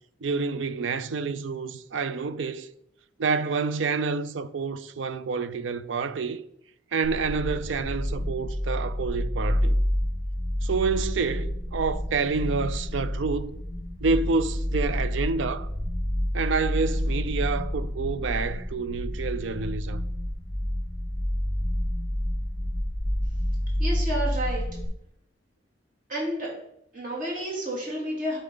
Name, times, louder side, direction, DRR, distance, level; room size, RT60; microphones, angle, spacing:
voice 1, 0.2-2.7 3.2-6.4 6.9-9.8 10.6-13.6 14.0-15.7 16.3-20.0, right 4 dB, 80° right, 0.5 m, -28 dB
sound 1, 7.0-24.8, equal, 10° left, 1.6 m, -29 dB
voice 2, 23.8-24.6 26.1-26.5 26.9-28.4, right 1 dB, 45° right, 2.8 m, -30 dB
11.0 x 4.0 x 3.9 m
head